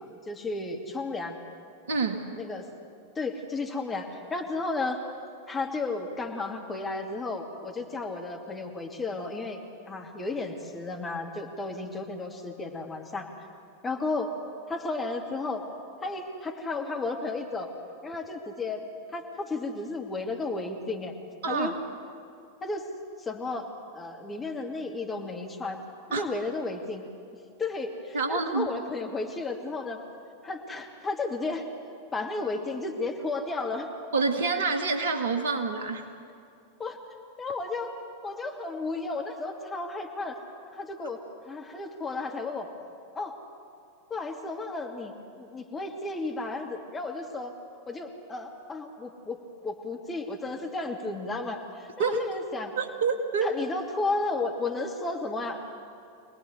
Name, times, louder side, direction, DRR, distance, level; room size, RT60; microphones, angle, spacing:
voice 1, 0.0-1.4 2.4-2.7 3.1-5.0 5.5-13.3 13.8-14.3 14.7-15.6 16.0-17.7 18.0-21.2 21.5-21.8 22.6-22.9 23.2-23.7 23.9-25.8 26.1-27.1 27.6-30.0 30.4-31.7 32.1-33.9 36.8-37.0 37.4-38.0 38.2-40.4 40.6-41.2 41.5-42.7 43.1-43.3 44.1-47.6 47.9-52.7 53.4-55.6, left 3 dB, 15° left, 2 dB, 2.6 m, -33 dB
voice 2, 1.9-2.2 21.4-21.7 26.1-26.2 28.1-28.7 34.1-36.0 52.0-52.2 52.8-53.5, right 4 dB, 60° right, 6 dB, 2.0 m, -27 dB
25.0 x 19.0 x 8.2 m, 2.5 s
figure-of-eight pair, 90°, 0 cm